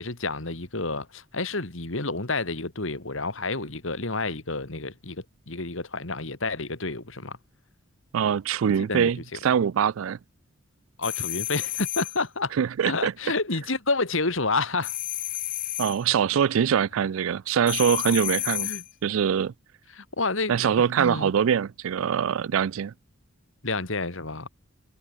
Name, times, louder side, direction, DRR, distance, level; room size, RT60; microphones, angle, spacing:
voice 1, 0.0-7.4 8.8-9.4 11.0-12.5 12.9-15.0 18.6-18.8 19.9-21.3 23.6-24.5, left 3 dB, 65° left, 2.6 m, -29 dB
voice 2, 8.1-10.2 12.6-13.1 15.8-18.7 19.0-19.5 20.5-22.9, right 8 dB, 70° right, 0.4 m, -23 dB
sound 1, 11.0-12.2 14.8-16.0 17.7-18.9, left 16 dB, 40° left, 0.6 m, -31 dB
head